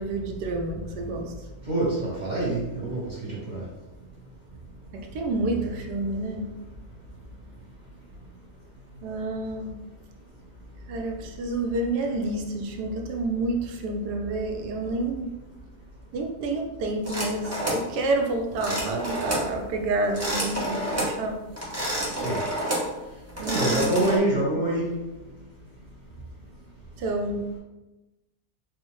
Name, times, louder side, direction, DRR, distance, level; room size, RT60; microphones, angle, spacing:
voice 1, 0.0-1.4 4.9-6.5 9.0-9.7 10.9-15.3 16.1-21.4 23.4-24.0 27.0-27.4, right 2 dB, 90° right, 3 dB, 1.2 m, -29 dB
voice 2, 1.7-3.6 22.2-22.4 23.5-24.9, right 2 dB, 35° right, -6 dB, 0.8 m, -26 dB
sound 1, 17.1-17.9 18.6-19.5 20.0-21.2 21.6-22.9 23.3-24.2, right 1 dB, 20° right, 0.4 m, -29 dB
4.5 x 2.1 x 2.9 m, 1.1 s
omnidirectional pair, 1.7 m